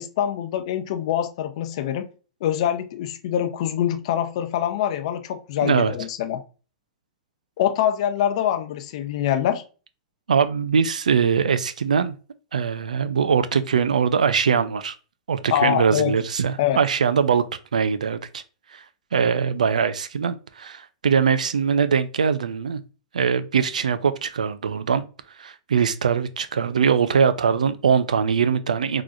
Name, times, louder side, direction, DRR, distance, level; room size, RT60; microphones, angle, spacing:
voice 1, 0.0-2.1 2.4-6.4 7.6-9.6 15.5-16.1 16.6-16.8, left 10 dB, 60° left, 0.6 m, -24 dB
voice 2, 5.6-5.9 10.3-12.2 12.5-15.0 15.3-17.4 17.7-18.4 18.7-18.8 19.1-22.8 23.1-25.0 25.4-29.0, right 6 dB, 90° right, 0.4 m, -22 dB
3.8 x 3.0 x 2.5 m
hypercardioid pair, 115°, 4 cm